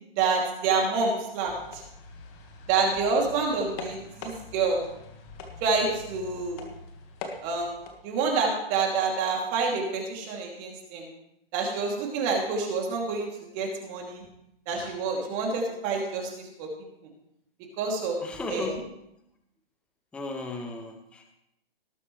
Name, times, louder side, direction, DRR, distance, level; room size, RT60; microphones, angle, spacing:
voice 1, 0.2-1.8 2.7-4.8 5.6-6.7 7.4-11.0 11.5-13.3 13.5-14.2 14.7-16.7 17.8-18.7, right 4 dB, 25° right, 0 dB, 2.8 m, -28 dB
sound 1, 1.4-7.9, left 3 dB, 25° left, 1.7 m, -43 dB
voice 2, 18.2-18.9 20.1-21.2, left 3 dB, 5° left, 4 dB, 0.7 m, -35 dB
19.0 x 8.5 x 3.2 m, 0.80 s
hypercardioid pair, 140°, 30 cm